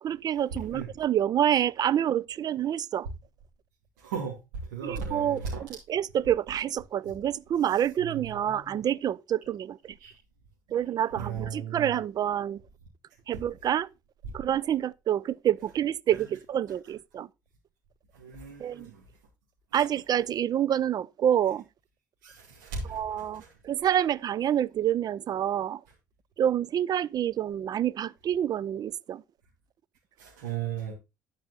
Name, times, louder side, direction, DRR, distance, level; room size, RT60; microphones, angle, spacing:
voice 1, 0.0-3.1 4.8-9.9 10.7-12.6 13.3-13.9 14.3-17.3 18.6-18.9 19.7-21.6 22.9-25.8 26.4-29.2, right 10 dB, 45° right, 0.5 m, -27 dB
voice 2, 4.0-4.4 4.7-5.6 8.0-8.8 10.0-10.1 11.2-12.0 14.2-14.3 16.1-16.2 18.1-19.0 19.7-19.8 22.2-23.0 23.3-23.5 30.2-30.9, right 6 dB, 75° right, 2.5 m, -36 dB
11.0 x 4.9 x 4.1 m
hypercardioid pair, 60°, 10 cm